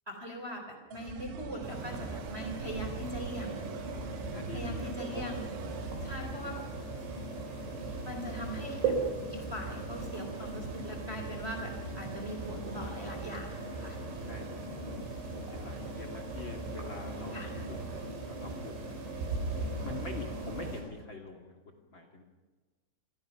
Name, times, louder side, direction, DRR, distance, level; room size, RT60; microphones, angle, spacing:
voice 1, 0.1-3.5 4.5-5.4 6.0-6.6 8.0-8.9 9.3-14.0 17.3-17.5, equal, 15° right, 4 dB, 3.2 m, -41 dB
sound 1, 0.9-5.9, right 7 dB, 75° right, 3.1 m, -44 dB
sound 2, 1.6-20.8, right 3 dB, 90° right, 7.0 m, -38 dB
voice 2, 4.3-5.3 6.2-6.6 8.5-8.6 14.3-15.1 15.3-19.1 19.8-22.2, left 3 dB, 35° left, 5 dB, 2.2 m, -45 dB
28.0 x 22.5 x 5.8 m, 1.3 s
omnidirectional pair, 5.2 m